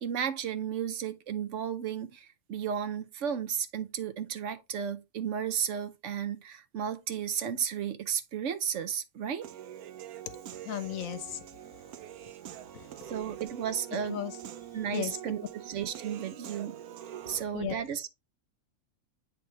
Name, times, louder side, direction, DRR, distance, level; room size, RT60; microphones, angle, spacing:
voice 1, 0.0-9.5 13.1-14.2 14.7-16.8 17.3-18.1, right 8 dB, 65° right, 0.9 m, -33 dB
Human voice / Piano, 9.4-17.4, right 10 dB, 85° right, 1.1 m, -44 dB
voice 2, 10.6-11.5 12.7-13.1 14.1-14.3 14.9-15.1 17.3-17.8, left 10 dB, 70° left, 1.1 m, -36 dB
8.9 x 3.4 x 3.2 m
omnidirectional pair, 1.6 m